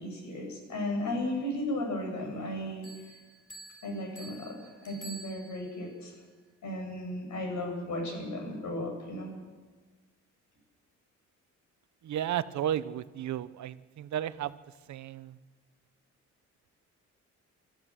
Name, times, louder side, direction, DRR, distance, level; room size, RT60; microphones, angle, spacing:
voice 1, 0.0-2.9 3.8-6.1 6.6-9.3, left 1 dB, 70° left, 2 dB, 7.8 m, -35 dB
Bell, 2.8-5.9, right 2 dB, 45° left, 4.5 m, -49 dB
voice 2, 12.0-14.6 14.9-15.4, right 11 dB, 70° right, 15 dB, 1.0 m, -33 dB
25.0 x 13.5 x 7.6 m, 1.4 s
cardioid pair, 90°, 30 cm